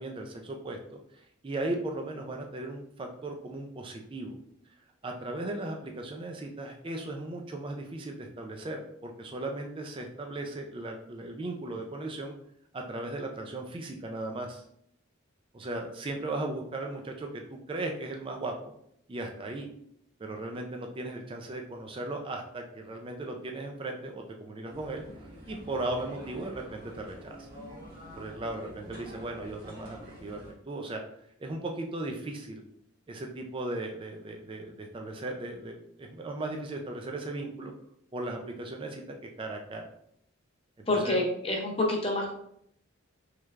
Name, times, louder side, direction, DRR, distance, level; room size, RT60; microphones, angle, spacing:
voice 1, 0.0-4.4 5.0-12.3 12.7-14.6 15.5-17.4 17.7-18.5 19.1-19.7 20.2-25.0 25.5-27.5 28.2-31.0 31.4-32.6 33.1-37.7 38.1-39.8 40.8-41.2, right 2 dB, 25° right, 3 dB, 0.3 m, -37 dB
sound 1, 24.7-30.5, equal, 45° right, 1.1 m, -47 dB
voice 2, 40.9-42.3, left 2 dB, 25° left, 0 dB, 0.6 m, -27 dB
3.2 x 3.2 x 2.4 m, 0.72 s
head